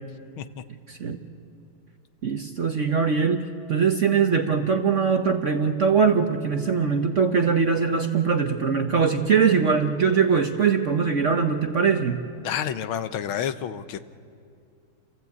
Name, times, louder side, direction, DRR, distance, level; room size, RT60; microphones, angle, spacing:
voice 1, 0.9-1.2 2.2-3.4 3.7-12.2, right 6 dB, 50° right, 5 dB, 0.9 m, -22 dB
voice 2, 12.4-14.0, left 9 dB, 80° left, 11 dB, 1.6 m, -29 dB
29.0 x 15.0 x 8.3 m, 2.4 s
omnidirectional pair, 2.2 m